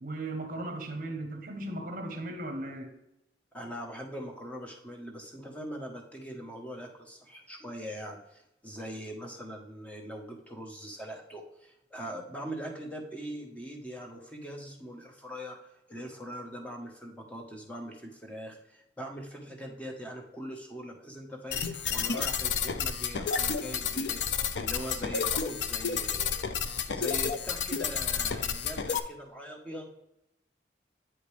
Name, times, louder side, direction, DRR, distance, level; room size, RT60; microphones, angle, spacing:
voice 1, 0.0-3.0, right 1 dB, 50° right, 0.9 m, -37 dB
voice 2, 3.5-26.4 26.9-30.1, equal, 10° left, 1.1 m, -42 dB
sound 1, 21.5-29.0, left 6 dB, 80° left, 0.5 m, -31 dB
8.8 x 5.1 x 3.3 m
head